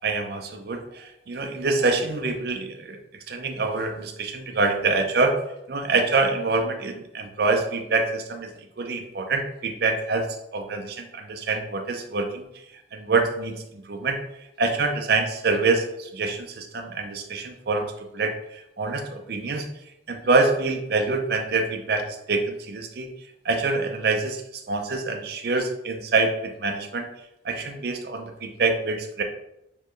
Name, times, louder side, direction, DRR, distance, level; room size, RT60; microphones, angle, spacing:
voice 1, 0.0-3.0 3.3-5.4 5.7-12.5 12.7-14.2 14.6-19.7 20.1-23.1 23.4-27.1 27.4-29.2, right 3 dB, 60° right, 5 dB, 0.5 m, -26 dB
4.4 x 3.1 x 3.1 m, 0.84 s
head